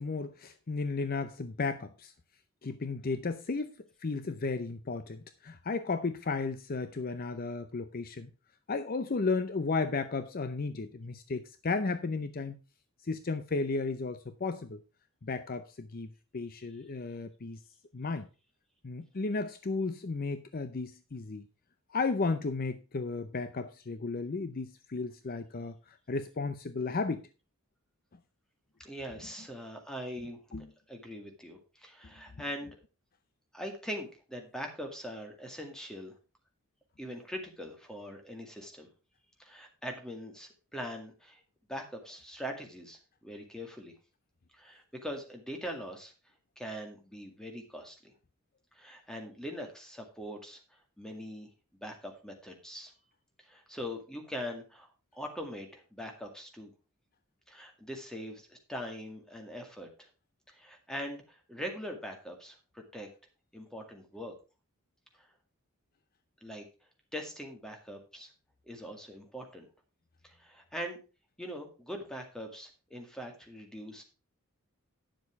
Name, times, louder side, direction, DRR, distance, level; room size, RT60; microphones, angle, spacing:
voice 1, 0.0-2.1 2.6-3.7 4.0-8.3 8.7-12.6 13.0-14.8 15.2-16.1 16.3-17.6 17.9-18.3 18.8-21.5 21.9-27.3 30.5-30.7, left 4 dB, 45° left, 0.6 m, -34 dB
voice 2, 28.8-32.8 33.5-36.1 37.0-38.9 39.4-41.4 41.7-43.9 44.5-46.1 46.6-48.1 48.7-51.5 51.8-52.9 53.4-56.7 57.5-60.1 60.5-63.1 63.5-64.3 65.2-65.3 66.4-66.7 67.1-68.3 68.7-69.7 70.2-71.0 71.4-74.0, equal, 5° left, 2.0 m, -42 dB
10.5 x 7.1 x 4.7 m
head